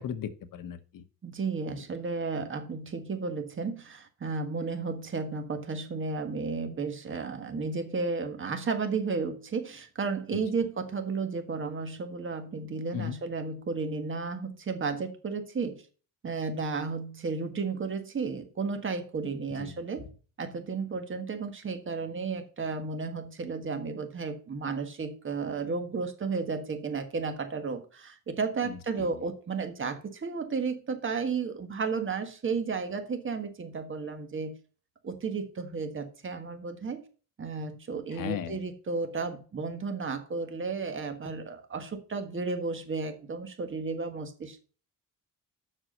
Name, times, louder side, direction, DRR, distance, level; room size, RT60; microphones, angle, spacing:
voice 1, 0.0-1.0 10.3-10.4 12.9-13.2 19.6-19.7 28.6-29.2 38.1-38.6, left 8 dB, 70° left, 11 dB, 1.0 m, -36 dB
voice 2, 1.2-15.8 16.2-20.1 20.4-34.5 35.0-37.0 37.4-44.6, right 4 dB, 35° right, 7 dB, 1.6 m, -33 dB
7.7 x 6.2 x 6.5 m, 0.38 s
cardioid pair, 135°, 34 cm